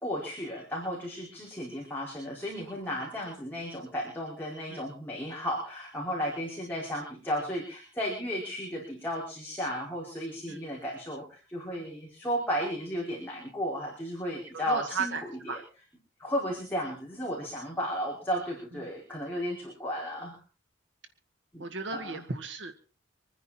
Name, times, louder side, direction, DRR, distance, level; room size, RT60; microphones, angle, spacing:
voice 1, 0.0-15.2 16.2-20.4 21.5-21.6 21.9-22.2, equal, 10° left, -4 dB, 5.0 m, -34 dB
voice 2, 14.5-15.6 18.8-18.9 21.6-22.7, right 4 dB, 70° right, 7 dB, 1.6 m, -35 dB
26.0 x 10.0 x 4.3 m, 0.36 s
head